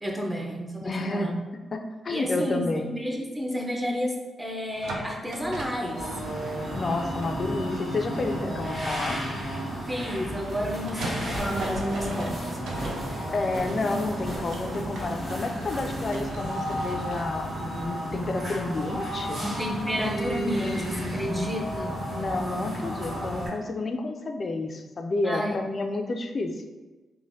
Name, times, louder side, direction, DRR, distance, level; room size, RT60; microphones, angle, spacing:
voice 1, 0.0-1.3 2.1-6.0 9.9-13.3 15.2-15.3 19.4-22.0 25.2-25.6, equal, 15° right, 0 dB, 0.6 m, -31 dB
voice 2, 0.8-1.4 1.7-1.8 2.0-2.9 6.7-9.2 13.3-19.4 22.1-26.7, left 2 dB, 50° left, 5 dB, 0.3 m, -30 dB
sound 1, 4.7-17.2, right 2 dB, 80° right, 0.4 m, -40 dB
sound 2, 5.9-23.5, equal, 55° right, 1.2 m, -33 dB
sound 3, 10.3-17.0 17.3-21.3 22.3-22.4 22.8-22.9, equal, 30° right, 1.5 m, -43 dB
3.1 x 2.1 x 2.7 m, 1.2 s
supercardioid pair, 55°, 0 cm